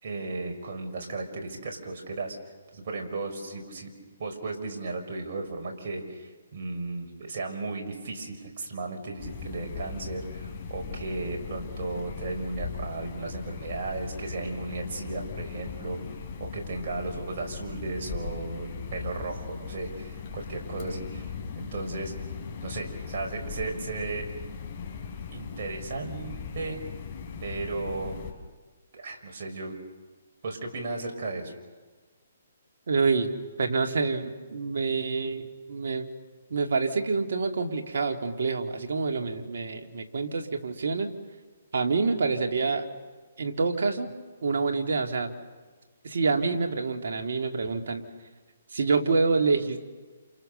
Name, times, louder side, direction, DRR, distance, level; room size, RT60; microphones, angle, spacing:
voice 1, 0.0-2.4 2.7-3.9 4.2-16.0 16.4-21.3 21.6-22.3 22.6-24.3 25.3-26.8 27.4-28.2 28.9-29.8 30.4-31.5, right 3 dB, 55° right, 2 dB, 5.6 m, -35 dB
sound 1, 9.2-28.3, left 5 dB, 40° left, 4.2 m, -38 dB
voice 2, 32.9-33.3 33.6-36.1 36.5-41.1 41.7-42.9 43.4-44.1 44.4-45.3 46.0-48.0 48.7-49.8, right 4 dB, 70° right, 4 dB, 2.5 m, -27 dB
29.0 x 28.5 x 6.8 m, 1.3 s
hypercardioid pair, 145°, 0 cm